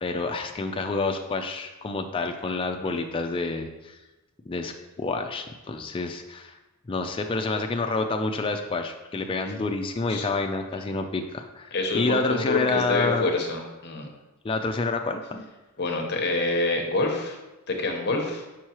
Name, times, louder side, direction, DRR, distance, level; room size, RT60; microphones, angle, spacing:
voice 1, 0.0-4.0 4.5-6.6 6.9-13.3 14.4-15.5, left 3 dB, 25° left, 4 dB, 0.3 m, -28 dB
voice 2, 11.7-14.1 15.8-17.4 17.7-18.5, left 2 dB, 50° left, 2 dB, 0.9 m, -26 dB
6.2 x 5.4 x 2.9 m, 1.1 s
head